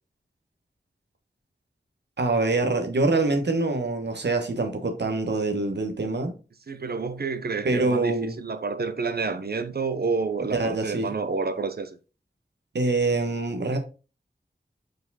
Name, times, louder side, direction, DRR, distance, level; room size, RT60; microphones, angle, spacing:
voice 1, 2.2-6.3 7.6-8.4 10.5-11.1 12.7-13.8, right 3 dB, 80° right, 1.4 m, -25 dB
voice 2, 6.7-12.0, right 4 dB, 65° right, 0.8 m, -29 dB
5.0 x 4.6 x 4.1 m
wide cardioid pair, 55°, 18 cm